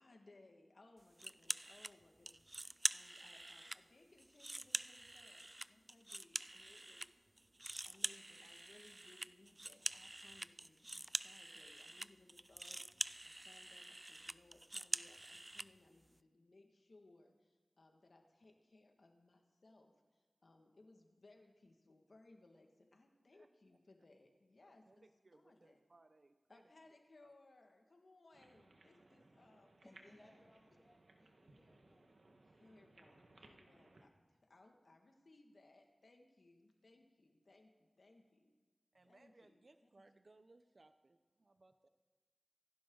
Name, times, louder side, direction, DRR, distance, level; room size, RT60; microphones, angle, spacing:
voice 1, 0.0-2.4 2.9-7.1 7.8-12.8 13.2-17.3 17.8-19.9 20.4-25.1 25.3-25.8 26.5-30.5 32.6-33.9 34.5-37.7 38.0-38.5 39.1-39.6, left 2 dB, 70° left, 3 dB, 1.9 m, -66 dB
sound 1, 1.2-1.9 2.3-3.8 4.2-7.1 7.4-15.7, right 1 dB, 25° right, 0.4 m, -45 dB
voice 2, 24.6-26.9 27.2-27.3 38.9-41.9, right 2 dB, 55° right, 9 dB, 0.7 m, -67 dB
sound 2, 28.3-34.1, right 2 dB, 85° right, 1.5 m, -66 dB
voice 3, 29.8-32.3, left 1 dB, 25° left, -3 dB, 2.2 m, -66 dB
26.0 x 11.5 x 3.9 m, 1.4 s
wide cardioid pair, 60°, 0 cm